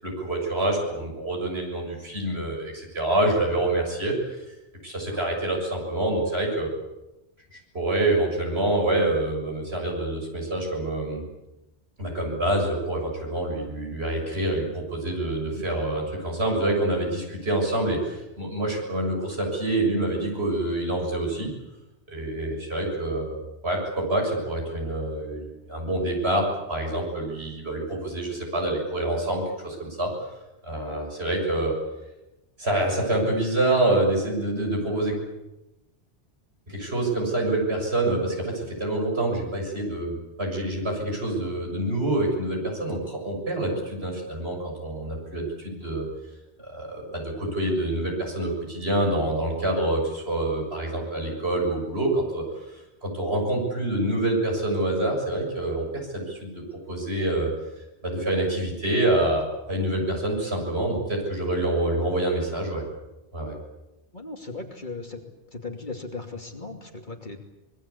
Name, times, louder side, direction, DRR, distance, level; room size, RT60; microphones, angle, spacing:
voice 1, 0.0-4.4 4.8-6.7 7.5-11.3 12.0-21.5 22.1-30.1 30.6-31.8 32.6-35.1 36.7-46.1 46.6-52.5 53.0-57.5 58.0-62.8 63.3-63.6, right 1 dB, 65° right, 1 dB, 7.3 m, -26 dB
voice 2, 64.1-65.2 65.5-67.4, left 3 dB, 45° left, 3 dB, 2.9 m, -37 dB
25.5 x 21.5 x 8.5 m, 1.0 s
omnidirectional pair, 1.2 m